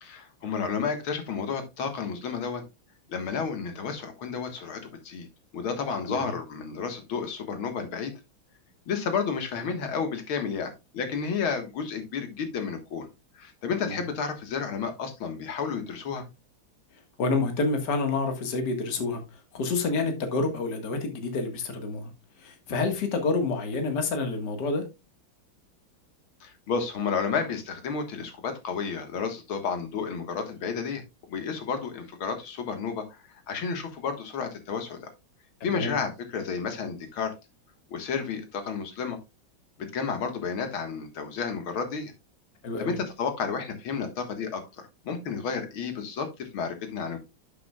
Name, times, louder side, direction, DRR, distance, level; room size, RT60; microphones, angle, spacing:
voice 1, 0.0-2.6 3.1-5.3 5.5-8.1 8.9-13.1 13.3-16.2 26.4-35.0 35.6-37.3 37.9-39.2 39.8-42.1 42.8-44.6 45.0-47.3, left 5 dB, 85° left, 2.4 m, -31 dB
voice 2, 17.2-22.1 22.4-24.8 35.6-36.0 42.6-43.0, left 3 dB, 55° left, 2.2 m, -28 dB
11.0 x 7.0 x 2.3 m
omnidirectional pair, 2.2 m